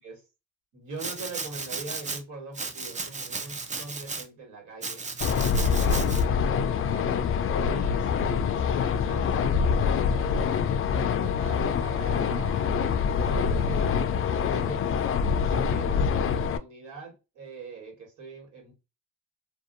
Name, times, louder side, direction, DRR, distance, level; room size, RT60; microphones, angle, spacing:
voice 1, 0.7-5.1 5.6-7.1 7.6-10.4 10.9-15.0 15.5-18.7, right 3 dB, 75° right, 1.6 m, -42 dB
Domestic sounds home sounds, 1.0-2.2 2.5-4.3 4.8-6.2, right 4 dB, 25° right, 0.5 m, -35 dB
sound 1, 5.2-16.6, left 6 dB, 45° left, 0.4 m, -25 dB
2.6 x 2.3 x 2.4 m
cardioid pair, 90°, 30 cm